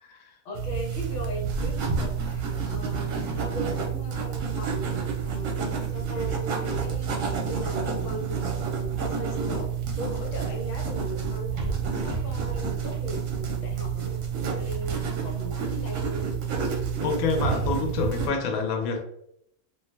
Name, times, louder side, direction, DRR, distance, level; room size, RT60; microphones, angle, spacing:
voice 1, 0.4-7.1 7.5-14.2 14.5-16.3, equal, 60° left, -1 dB, 1.1 m, -38 dB
sound 1, 0.5-18.3, right 6 dB, 65° right, 0.9 m, -29 dB
voice 2, 17.0-19.0, left 5 dB, 80° left, 4 dB, 1.0 m, -27 dB
2.5 x 2.2 x 3.1 m, 0.73 s
omnidirectional pair, 1.5 m